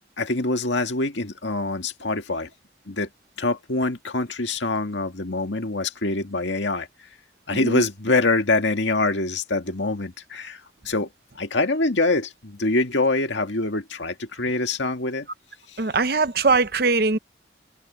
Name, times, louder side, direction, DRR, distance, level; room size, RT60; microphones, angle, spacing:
voice 1, 0.2-2.5 2.9-3.1 3.4-6.9 7.5-10.6 10.9-11.1 11.4-15.3, left 2 dB, 85° left, 2.0 m, -24 dB
voice 2, 7.5-7.8 15.8-17.2, right 3 dB, 55° right, 0.8 m, -21 dB
head